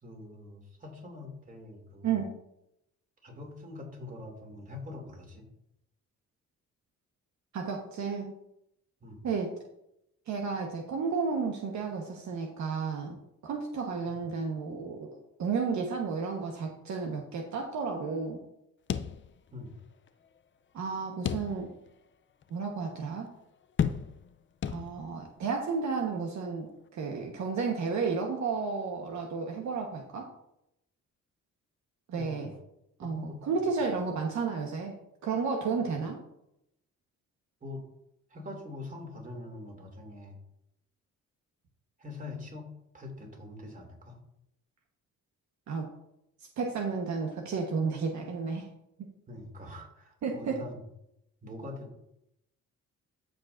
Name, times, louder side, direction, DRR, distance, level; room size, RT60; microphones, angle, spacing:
voice 1, 0.0-2.2 3.2-5.4 9.0-9.2 14.0-14.2 19.5-19.8 32.1-32.5 33.0-33.7 37.6-37.8 38.3-40.4 42.0-44.2 49.3-50.8 51.4-52.0, left 2 dB, 25° right, 1 dB, 2.8 m, -44 dB
voice 2, 7.5-8.3 9.2-9.5 10.3-13.2 13.4-18.4 20.7-21.7 22.5-23.3 24.7-30.3 32.1-32.5 33.0-35.0 35.2-36.2 45.7-45.9 46.6-48.7 49.0-49.1 50.2-50.6, right 5 dB, 65° right, 2 dB, 1.3 m, -32 dB
sound 1, 18.9-19.8 20.1-20.2 21.3-21.9 22.4-22.5 23.8-24.3 24.6-25.3, left 7 dB, 40° left, 0.6 m, -32 dB
14.5 x 5.2 x 2.6 m, 0.80 s
cardioid pair, 90°, 30 cm